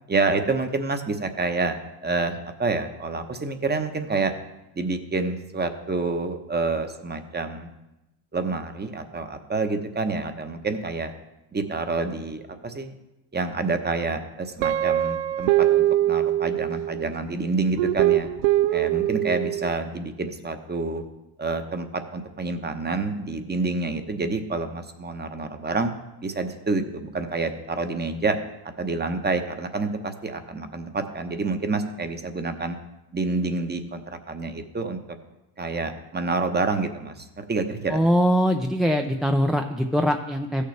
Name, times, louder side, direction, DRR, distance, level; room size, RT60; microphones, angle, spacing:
voice 1, 0.1-4.3 4.7-7.7 8.3-11.1 11.5-12.9 13.3-18.3 18.7-21.0 21.4-25.9 26.2-28.4 28.8-32.8 33.1-35.0 35.6-38.0, right 3 dB, 20° right, 8 dB, 1.0 m, -28 dB
Guitar, 14.6-17.1 17.8-19.7, right 13 dB, 80° right, 0.6 m, -22 dB
voice 2, 37.9-40.6, equal, ahead, 3 dB, 0.5 m, -22 dB
15.0 x 6.7 x 3.3 m, 0.96 s
supercardioid pair, 85°, 46 cm